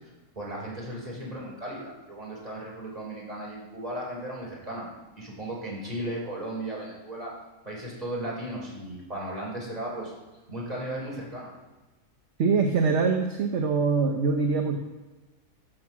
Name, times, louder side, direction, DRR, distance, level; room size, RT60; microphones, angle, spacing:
voice 1, 0.3-4.9 5.1-7.3 7.6-10.1 10.5-11.5, right 1 dB, 25° right, -4 dB, 4.3 m, -36 dB
voice 2, 12.4-14.8, right 4 dB, 55° right, 3 dB, 1.1 m, -23 dB
14.0 x 6.1 x 6.1 m, 1.2 s
omnidirectional pair, 1.7 m